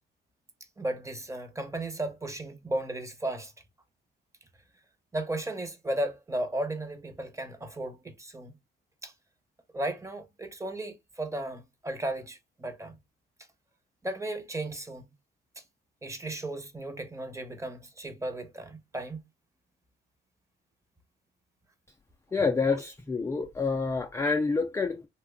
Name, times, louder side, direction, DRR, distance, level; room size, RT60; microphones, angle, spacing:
voice 1, 0.8-3.5 5.1-8.5 9.0-9.1 9.7-13.0 14.0-15.0 16.0-19.2, right 1 dB, 15° right, 0.8 m, -35 dB
voice 2, 22.3-25.1, left 4 dB, 15° left, 0.3 m, -28 dB
2.9 x 2.2 x 3.6 m
cardioid pair, 90°, 20 cm